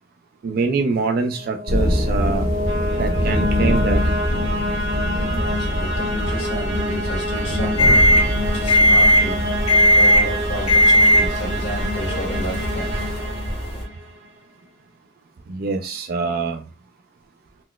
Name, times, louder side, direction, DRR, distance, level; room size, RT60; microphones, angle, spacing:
voice 1, 0.4-2.5 2.9-4.0 7.9-8.0 15.5-16.7, right 4 dB, 45° right, 0.3 m, -24 dB
sound 1, 1.2-14.2, left 1 dB, 65° right, 0.7 m, -27 dB
sound 2, 1.7-13.2, equal, 80° left, 1.4 m, -26 dB
voice 2, 4.8-13.1, left 1 dB, 65° left, 1.5 m, -32 dB
sound 3, 7.8-13.8, equal, 30° left, 0.6 m, -17 dB
3.9 x 2.0 x 2.2 m
head